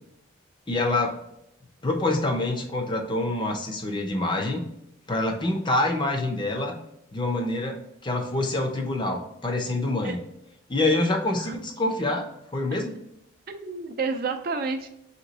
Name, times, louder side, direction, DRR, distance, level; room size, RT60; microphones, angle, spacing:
voice 1, 0.7-1.2 1.8-4.6 5.1-6.7 7.1-10.2 10.7-12.3 12.5-12.9, left 2 dB, 25° left, 3 dB, 0.5 m, -26 dB
voice 2, 13.5-14.9, right 4 dB, 45° right, 6 dB, 0.4 m, -30 dB
3.7 x 2.9 x 3.9 m, 0.82 s
head